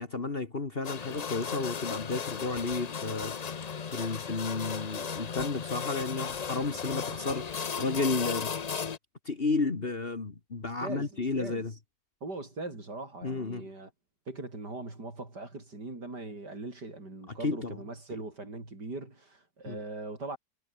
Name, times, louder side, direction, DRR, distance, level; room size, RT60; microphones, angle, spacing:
voice 1, 0.0-8.5 9.3-11.7 13.2-13.7 17.4-17.8 18.1-18.2 19.7-19.8, left 3 dB, 35° left, 1.9 m, -32 dB
sound 1, 0.8-9.0, left 6 dB, 70° left, 0.3 m, -36 dB
voice 2, 10.8-11.7 12.2-13.9 14.3-20.4, right 2 dB, 70° right, 6.9 m, -40 dB
omnidirectional pair, 1.9 m